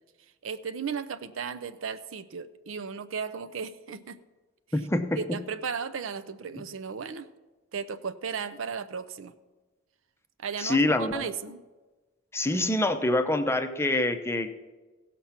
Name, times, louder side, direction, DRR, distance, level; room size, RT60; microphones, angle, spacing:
voice 1, 0.4-4.2 5.2-7.3 7.7-9.3 10.4-11.6, right 6 dB, 90° right, 11 dB, 0.5 m, -35 dB
voice 2, 4.7-5.2 10.6-11.2 12.3-14.5, left 2 dB, 15° left, 8 dB, 0.6 m, -25 dB
16.5 x 5.9 x 5.7 m, 1.3 s
head